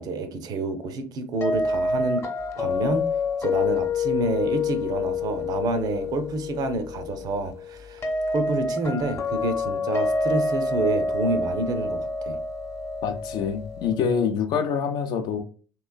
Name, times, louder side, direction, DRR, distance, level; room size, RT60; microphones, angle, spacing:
voice 1, 0.0-2.2 2.6-3.1 3.4-12.4, right 2 dB, 45° right, 0.5 m, -28 dB
sound 1, 1.4-14.3, left 3 dB, 30° left, 0.9 m, -27 dB
voice 2, 13.0-15.4, left 6 dB, 50° left, 0.5 m, -25 dB
3.0 x 3.0 x 2.2 m
figure-of-eight pair, 60°, 9 cm